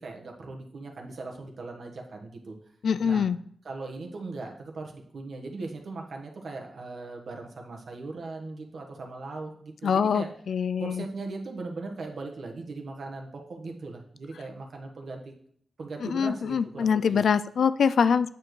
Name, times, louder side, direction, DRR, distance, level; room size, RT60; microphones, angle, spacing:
voice 1, 0.0-2.6 3.0-3.3 3.6-10.3 10.8-15.3 15.8-17.2, right 3 dB, 60° right, 2 dB, 1.3 m, -39 dB
voice 2, 2.8-3.4 9.8-11.0 16.1-18.3, left 6 dB, 80° left, 14 dB, 0.3 m, -24 dB
8.3 x 7.1 x 3.2 m, 0.62 s
wide cardioid pair, 135°, 0 cm